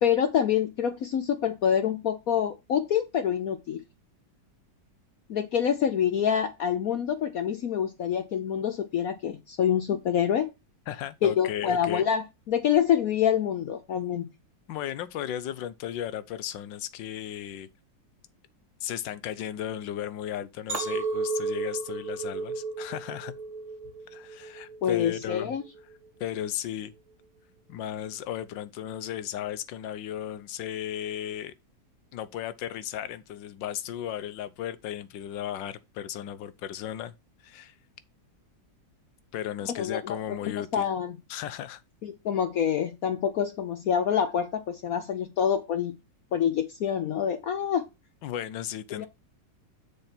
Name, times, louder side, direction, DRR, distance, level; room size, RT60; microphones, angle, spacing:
voice 1, 0.0-3.8 5.3-10.5 11.2-14.3 24.8-25.6 39.8-40.2 40.7-41.1 42.0-45.9 46.3-47.9 49.0-49.1, left 8 dB, 60° left, 1.1 m, -26 dB
voice 2, 10.9-12.1 14.7-17.7 18.8-23.3 24.1-25.5 26.2-26.9 27.7-31.5 32.1-37.1 37.4-37.7 39.3-40.9 41.3-41.8 48.2-49.1, left 11 dB, 90° left, 1.4 m, -35 dB
Chink clink, 20.7-25.0 25.5-25.9, right 4 dB, 45° right, 2.0 m, -33 dB
6.6 x 4.3 x 5.8 m
omnidirectional pair, 1.9 m